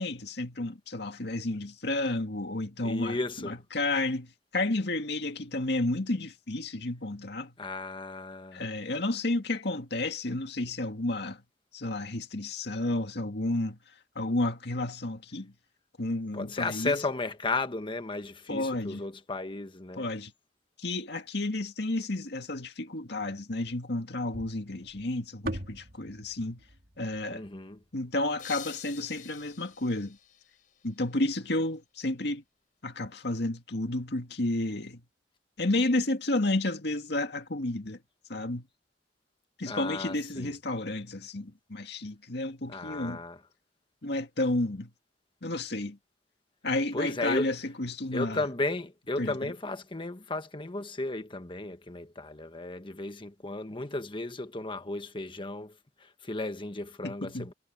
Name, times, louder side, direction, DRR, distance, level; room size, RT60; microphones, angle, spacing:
voice 1, 0.0-7.5 8.5-11.4 11.7-13.8 14.2-15.5 16.0-16.9 18.5-19.0 20.0-20.3 20.8-26.6 27.0-27.4 27.9-30.2 30.8-32.4 32.8-35.0 35.6-38.0 38.3-38.7 39.6-43.2 44.0-44.9 45.4-46.0 46.6-48.5 49.2-49.5 57.0-57.5, left 2 dB, 65° left, 2.1 m, -31 dB
voice 2, 2.8-3.6 7.6-8.6 16.3-20.0 27.3-27.8 39.6-40.5 42.7-43.4 46.9-47.5 48.1-57.5, left 2 dB, 30° left, 1.4 m, -34 dB
sound 1, 24.3-28.6, right 1 dB, 55° right, 3.6 m, -42 dB
sound 2, 28.4-31.2, left 11 dB, 50° left, 4.5 m, -47 dB
head